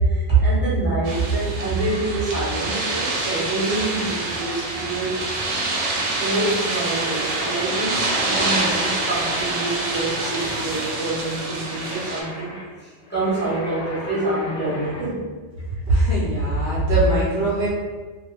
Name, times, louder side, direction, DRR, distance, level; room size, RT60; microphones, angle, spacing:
voice 1, 0.0-5.2 6.2-12.5 12.8-15.3, right 2 dB, 10° left, -10 dB, 1.0 m, -25 dB
sound 1, 1.0-12.2, right 2 dB, 85° right, 1.0 m, -26 dB
sound 2, 8.2-15.1, left 1 dB, 50° left, 0.9 m, -38 dB
voice 2, 15.7-17.7, right 1 dB, 60° right, -7 dB, 0.9 m, -20 dB
2.7 x 2.4 x 3.2 m, 1.3 s
omnidirectional pair, 1.3 m